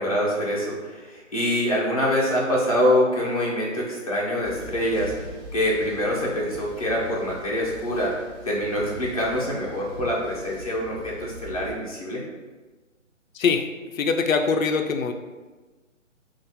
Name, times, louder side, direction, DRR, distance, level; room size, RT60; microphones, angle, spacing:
voice 1, 0.0-12.2, left 1 dB, 30° left, -5 dB, 0.7 m, -25 dB
sound 1, 4.4-11.7, right 1 dB, 5° right, 1.0 m, -41 dB
voice 2, 13.9-15.1, left 5 dB, 85° left, 5 dB, 0.5 m, -22 dB
3.8 x 2.5 x 4.0 m, 1.3 s
hypercardioid pair, 175°, 39 cm